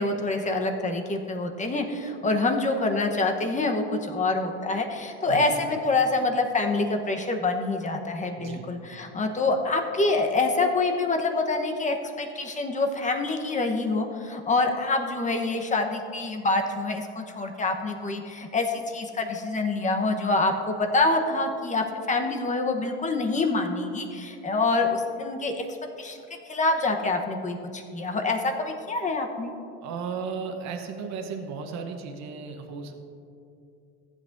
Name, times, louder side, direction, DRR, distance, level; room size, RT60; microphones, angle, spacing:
voice 1, 0.0-25.6 26.0-26.2 26.4-29.5, left 3 dB, 25° left, 4 dB, 1.0 m, -26 dB
voice 2, 5.2-5.6 8.4-8.7 29.8-32.9, right 5 dB, 60° right, 4 dB, 1.1 m, -35 dB
15.0 x 8.2 x 2.7 m, 2.5 s
supercardioid pair, 95°, 31 cm